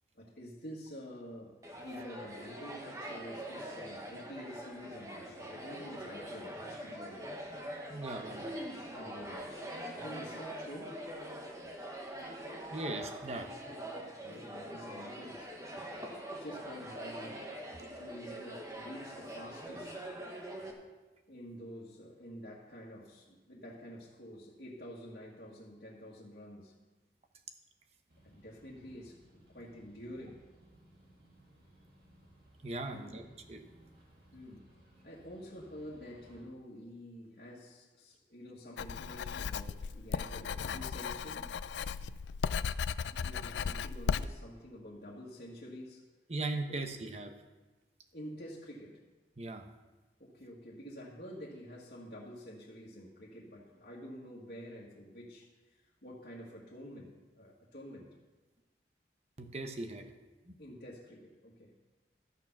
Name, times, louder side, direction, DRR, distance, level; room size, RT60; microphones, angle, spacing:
voice 1, 0.1-7.9 8.2-8.5 8.9-9.6 9.9-10.9 14.2-20.1 21.3-26.7 28.2-30.4 32.8-33.3 34.3-34.7 35.0-41.5 43.1-46.0 46.7-46.8 48.1-49.0 50.2-58.1 60.6-61.7, equal, 55° left, -7 dB, 1.7 m, -49 dB
sound 1, 1.6-20.7, right 1 dB, 20° right, 1.2 m, -44 dB
voice 2, 7.9-8.5 12.7-13.5 32.6-33.2 33.5-33.6 46.3-47.3 49.4-49.6 59.4-60.1 60.5-60.6, right 2 dB, 35° right, 5 dB, 0.9 m, -38 dB
sound 2, 28.1-36.4, right 1 dB, 55° right, 2.7 m, -61 dB
Writing, 38.8-44.3, left 6 dB, 90° left, 0.4 m, -36 dB
13.5 x 6.8 x 6.0 m, 1.2 s
head